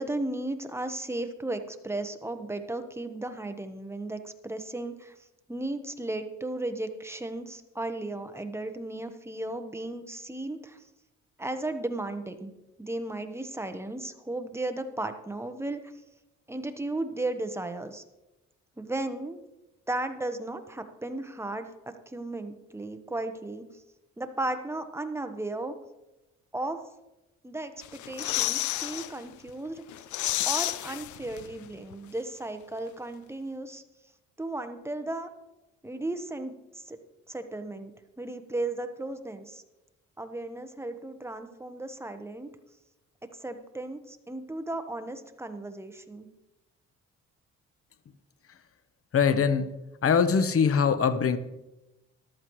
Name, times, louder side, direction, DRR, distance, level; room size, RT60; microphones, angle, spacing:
voice 1, 0.0-5.1 5.5-10.8 11.4-12.5 12.8-15.8 16.5-18.0 18.8-19.4 19.9-23.6 24.2-25.7 26.5-26.8 27.4-29.8 30.5-33.8 34.4-35.3 35.8-37.0 37.3-37.9 38.2-39.6 40.2-42.5 43.2-46.3, right 2 dB, 10° right, 8 dB, 1.1 m, -35 dB
sound 1, 27.8-29.1 29.5-29.6 29.9-31.7 31.9-32.0, left 14 dB, 75° left, 0.6 m, -30 dB
voice 2, 49.1-49.7 50.0-51.4, left 6 dB, 50° left, 12 dB, 1.0 m, -22 dB
14.0 x 12.0 x 3.2 m, 0.98 s
cardioid pair, 90°, 30 cm